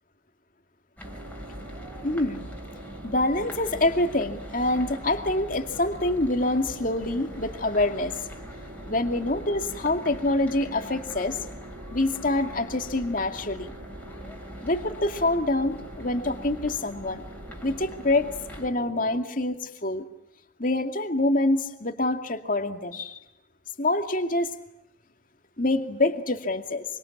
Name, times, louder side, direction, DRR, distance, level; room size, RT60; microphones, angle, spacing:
ice skating, 1.0-18.7, equal, 10° left, 4.1 m, -43 dB
sound 1, 1.0-19.2, right 2 dB, 55° right, 2.5 m, -45 dB
voice 1, 2.0-2.5 3.0-8.2 8.9-11.4 11.9-13.7 14.6-17.2 17.6-18.3 18.6-20.1 20.6-23.2 23.8-24.5 25.6-26.8, left 2 dB, 45° left, 6 dB, 2.4 m, -26 dB
25.5 x 25.5 x 8.7 m, 0.87 s
head